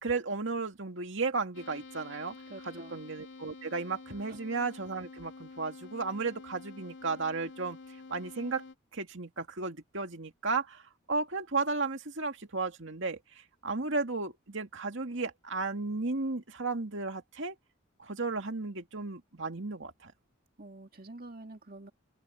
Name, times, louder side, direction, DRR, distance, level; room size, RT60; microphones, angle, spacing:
voice 1, 0.0-2.4 2.6-7.8 8.1-8.6 8.9-10.8 11.1-17.6 18.0-20.1, right 3 dB, 60° right, 2.3 m, -34 dB
sound 1, 1.5-8.8, left 3 dB, 60° left, 2.1 m, -49 dB
voice 2, 2.5-3.0 4.3-4.4 20.6-21.9, right 2 dB, 45° right, 2.1 m, -47 dB
head